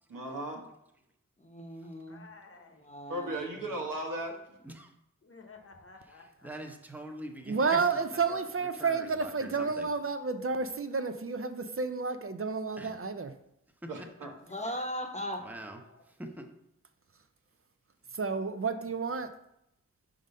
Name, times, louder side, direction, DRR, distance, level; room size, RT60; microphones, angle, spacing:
voice 1, 0.1-0.6 3.1-4.4 13.9-14.3, right 1 dB, 85° right, 1 dB, 1.2 m, -36 dB
voice 2, 1.4-2.2 2.8-3.8 14.5-15.5, equal, 20° left, 3 dB, 0.9 m, -38 dB
voice 3, 2.1-2.9 5.2-6.8 14.6-14.8 15.8-16.0, left 4 dB, 45° left, 3 dB, 1.0 m, -54 dB
voice 4, 6.4-8.4 8.8-9.9 12.8-12.9 13.8-14.1 15.4-16.5, right 1 dB, 5° right, 4 dB, 0.8 m, -44 dB
voice 5, 7.5-13.3 18.1-19.3, right 4 dB, 45° right, 9 dB, 0.5 m, -31 dB
5.0 x 3.9 x 5.4 m, 0.79 s
wide cardioid pair, 60°, 32 cm